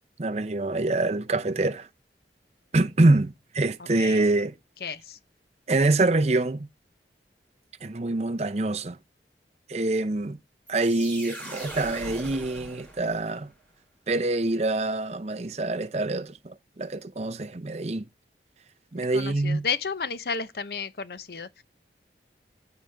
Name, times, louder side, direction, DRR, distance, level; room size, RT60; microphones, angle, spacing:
voice 1, 0.2-1.9 2.7-4.5 5.7-6.7 7.8-9.0 9.7-10.4 10.7-13.5 14.1-18.1 18.9-19.7, right 2 dB, 35° right, 0.6 m, -25 dB
voice 2, 4.8-5.2 19.1-21.6, left 5 dB, 60° left, 0.8 m, -32 dB
sound 1, 10.7-13.5, right 1 dB, 10° left, 5.5 m, -40 dB
14.5 x 5.0 x 3.4 m
head